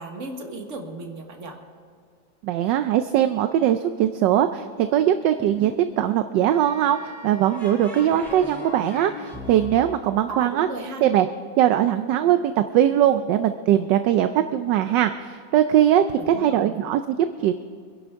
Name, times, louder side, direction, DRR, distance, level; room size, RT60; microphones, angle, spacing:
voice 1, 0.0-1.6 10.3-11.0 16.3-16.8, right 2 dB, 40° right, 3 dB, 1.7 m, -35 dB
voice 2, 2.4-5.7 6.0-10.7 11.0-11.3 11.6-17.5, right 11 dB, 75° right, 9 dB, 1.2 m, -21 dB
sound 1, 5.4-6.2 7.5-11.2, left 2 dB, ahead, 4.8 m, -38 dB
sound 2, 6.4-10.1, equal, 60° left, 5.2 m, -48 dB
25.5 x 11.0 x 3.6 m, 2.2 s
omnidirectional pair, 2.1 m